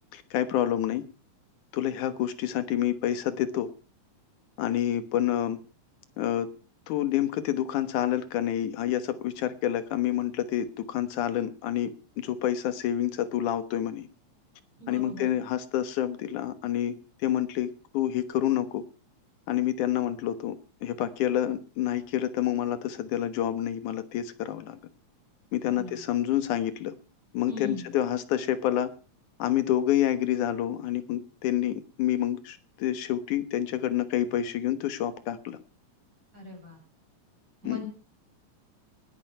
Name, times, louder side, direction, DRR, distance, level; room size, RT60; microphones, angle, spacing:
voice 1, 0.1-1.0 1.7-3.7 4.6-5.6 6.2-6.5 6.9-11.9 12.2-14.1 14.9-18.8 19.5-20.6 20.8-24.8 25.5-26.9 27.3-28.9 29.4-35.6 37.7-37.8, left 11 dB, 85° left, 12 dB, 2.8 m, -28 dB
voice 2, 14.8-15.3 25.6-26.1 27.5-27.9 36.3-36.8 37.6-37.8, left 3 dB, 25° right, 1 dB, 7.4 m, -39 dB
19.5 x 9.2 x 6.6 m, 0.38 s
omnidirectional pair, 3.4 m